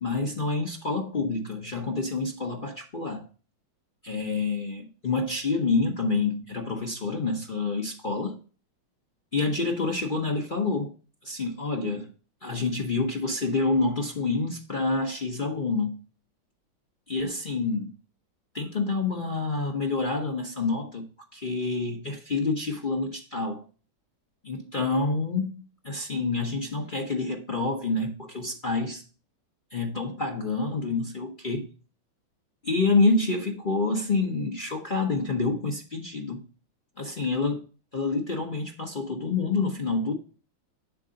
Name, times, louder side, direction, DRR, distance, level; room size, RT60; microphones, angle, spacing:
voice 1, 0.0-3.3 4.0-8.4 9.3-10.9 11.2-12.1 12.4-16.0 17.1-17.9 18.5-23.6 24.4-29.0 29.7-31.7 32.6-36.4 37.0-37.6 37.9-40.1, left 3 dB, 70° left, 0.4 m, -28 dB
8.2 x 3.7 x 5.1 m
omnidirectional pair, 2.2 m